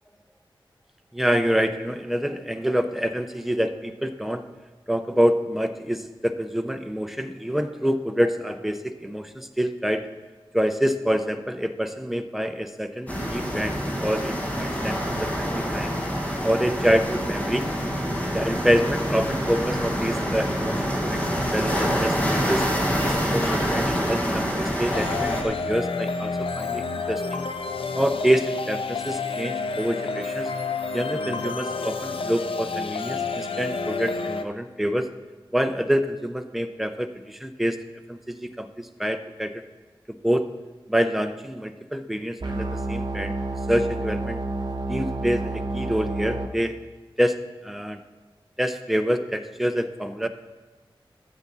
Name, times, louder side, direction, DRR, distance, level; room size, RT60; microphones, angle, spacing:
voice 1, 1.1-4.4 4.9-10.1 10.5-15.9 16.4-17.7 18.3-22.6 23.0-27.4 27.9-30.5 30.9-35.1 35.5-37.8 38.1-39.5 40.2-40.5 40.9-43.4 43.7-44.4 44.9-46.8 47.2-47.4 47.6-48.0 48.6-50.3, equal, ahead, 7 dB, 0.6 m, -26 dB
sound 1, 13.1-25.4, equal, 15° left, 1.5 m, -26 dB
sound 2, 24.9-34.4, left 4 dB, 80° left, 0.6 m, -29 dB
sound 3, 42.4-46.5, right 2 dB, 50° right, 0.8 m, -29 dB
13.0 x 7.4 x 4.1 m, 1.3 s
wide cardioid pair, 95°, 9 cm